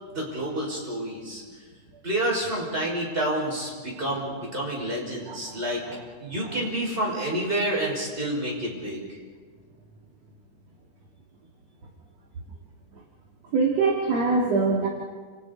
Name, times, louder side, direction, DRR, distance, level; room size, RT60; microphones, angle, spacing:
voice 1, 0.1-1.4 2.0-5.8 6.2-9.0, right 1 dB, 10° right, -3 dB, 5.7 m, -28 dB
voice 2, 13.5-14.9, right 4 dB, 45° right, -2 dB, 3.0 m, -23 dB
29.5 x 28.5 x 4.2 m, 1.5 s
omnidirectional pair, 4.9 m